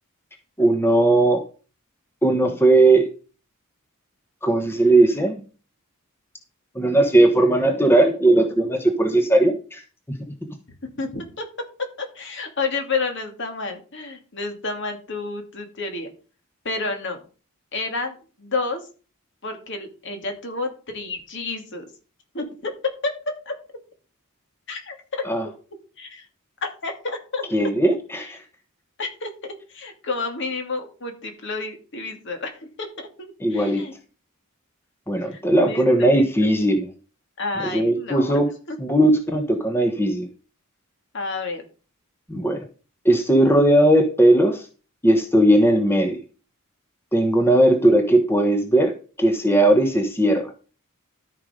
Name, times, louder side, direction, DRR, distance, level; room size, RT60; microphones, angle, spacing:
voice 1, 0.6-1.4 2.2-3.1 4.4-5.4 6.7-9.8 25.2-25.5 27.5-28.4 33.4-33.8 35.1-36.9 37.6-38.5 38.8-40.3 42.3-42.6 43.0-44.7 45.0-46.2 47.1-50.5, right 1 dB, 10° left, 5 dB, 1.1 m, -18 dB
voice 2, 11.0-11.5 12.0-16.1 16.6-17.2 17.7-18.8 19.4-21.9 22.3-23.1 23.5-23.6 24.7-25.2 26.0-26.3 26.6-27.4 29.0-33.9 35.3-36.3 37.4-38.4 38.7-38.8 41.1-41.6, left 3 dB, 55° left, 4 dB, 2.6 m, -30 dB
13.5 x 5.3 x 5.2 m, 0.36 s
head